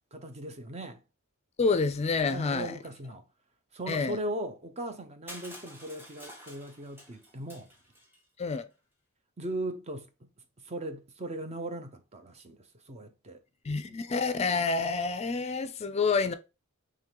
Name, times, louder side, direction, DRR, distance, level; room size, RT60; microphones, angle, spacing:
voice 1, 0.1-1.0 2.3-3.3 3.7-7.7 9.4-10.3 10.6-13.4 13.9-14.0, right 1 dB, 30° right, 0.6 m, -38 dB
voice 2, 1.6-2.8 3.9-4.2 8.4-8.6 13.6-16.3, left 4 dB, 30° left, 0.4 m, -28 dB
Crushing, 5.3-8.2, equal, 10° right, 1.4 m, -49 dB
3.7 x 3.2 x 4.5 m
head